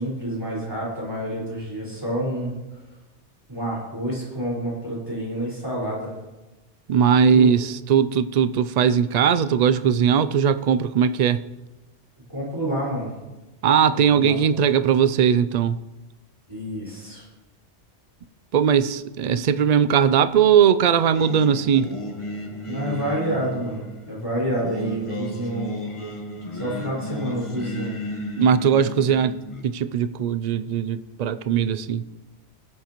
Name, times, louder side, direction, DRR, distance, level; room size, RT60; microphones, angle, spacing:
voice 1, 0.0-2.5 3.5-6.1 7.3-7.5 12.3-13.1 13.9-14.4 16.5-17.2 22.7-25.7 26.5-27.9, right 1 dB, 20° right, -6 dB, 4.9 m, -28 dB
voice 2, 6.9-11.4 13.6-15.8 18.5-21.9 28.4-29.3 29.6-32.0, right 7 dB, 65° right, 13 dB, 0.4 m, -19 dB
Singing, 21.1-29.6, left 1 dB, 25° left, 1.3 m, -34 dB
22.0 x 7.6 x 3.0 m, 1.1 s
omnidirectional pair, 1.2 m